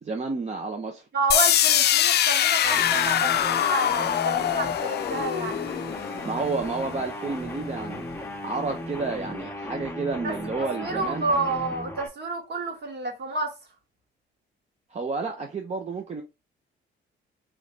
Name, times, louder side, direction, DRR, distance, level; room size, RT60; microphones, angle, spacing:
voice 1, 0.0-1.0 6.2-8.1 8.4-11.2 14.9-16.2, right 4 dB, 35° right, 0.7 m, -30 dB
voice 2, 1.1-5.6 10.2-13.5, right 3 dB, 55° right, 1.9 m, -30 dB
sound 1, 1.3-7.2, left 11 dB, 55° left, 0.4 m, -23 dB
sound 2, 2.6-12.1, left 1 dB, 10° left, 0.9 m, -36 dB
3.7 x 3.2 x 3.3 m
cardioid pair, 90°, 20 cm